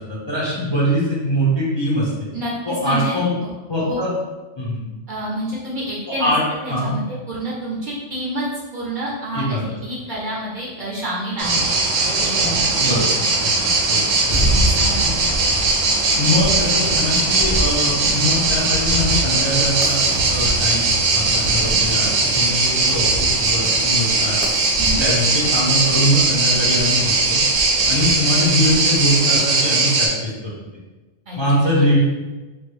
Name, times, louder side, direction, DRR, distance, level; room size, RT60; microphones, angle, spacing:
voice 1, 0.3-2.1 2.7-3.3 3.7-4.1 4.6-4.8 6.2-6.4 6.7-6.9 9.3-9.6 12.8-13.1 13.4-13.5 13.9-14.4 16.2-24.4 25.0-27.4 27.9-30.3 31.4-32.0, equal, 30° left, -7 dB, 0.5 m, -22 dB
voice 2, 2.8-3.2 3.8-4.0 5.1-6.3 6.6-8.5 8.7-11.6 12.2-13.2 13.6-14.0 14.5-15.2 24.8-25.0 31.3-31.4 31.6-31.9, right 1 dB, 50° right, -6 dB, 0.7 m, -29 dB
sound 1, 11.4-30.1, right 3 dB, 80° right, 0.9 m, -19 dB
sound 2, 14.3-29.4, equal, 70° left, 0.9 m, -29 dB
3.2 x 2.1 x 3.1 m, 1.2 s
omnidirectional pair, 1.3 m